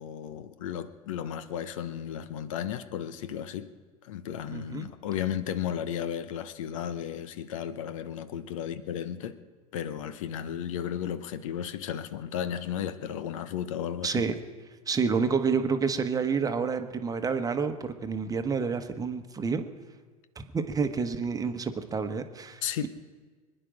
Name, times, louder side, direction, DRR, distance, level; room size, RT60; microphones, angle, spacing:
voice 1, 0.0-3.7 4.0-9.4 9.7-14.2 22.6-22.9, left 9 dB, 60° left, 0.9 m, -34 dB
voice 2, 4.5-4.9 14.0-14.3 14.9-19.6 20.4-22.9, right 5 dB, 20° right, 1.2 m, -29 dB
25.5 x 10.0 x 5.1 m
figure-of-eight pair, 80°, 19 cm